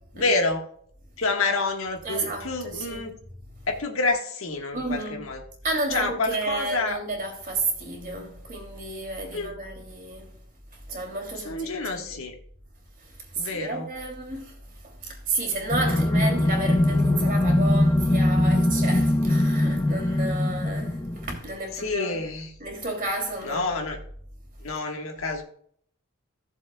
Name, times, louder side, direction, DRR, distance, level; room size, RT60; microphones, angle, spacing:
voice 1, 0.1-0.7 1.2-3.2 3.7-5.4 5.9-7.0 9.3-9.5 11.4-12.3 13.4-13.9 21.7-22.5 23.4-24.0 24.6-25.4, left 3 dB, 80° left, 1.5 m, -28 dB
voice 2, 2.0-3.0 3.5-3.7 4.7-5.2 5.6-10.3 10.7-12.2 13.0-22.2 22.6-23.7, right 2 dB, 40° right, 2.8 m, -32 dB
sound 1, 15.7-21.4, left 1 dB, 15° left, 0.3 m, -22 dB
16.5 x 7.2 x 2.3 m
head